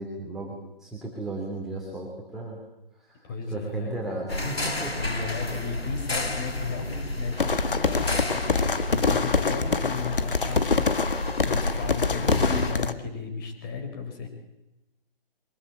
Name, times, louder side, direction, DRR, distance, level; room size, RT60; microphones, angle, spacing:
voice 1, 0.0-2.6 3.0-5.0, right 2 dB, ahead, -5 dB, 3.0 m, -35 dB
voice 2, 3.2-4.0 5.0-14.3, left 4 dB, 25° left, 5 dB, 4.5 m, -34 dB
sound 1, 4.3-12.7, left 2 dB, 90° left, 2.5 m, -31 dB
sound 2, 7.4-12.9, left 4 dB, 60° left, 1.6 m, -26 dB
23.5 x 19.0 x 8.6 m, 0.94 s
figure-of-eight pair, 145°, 30 cm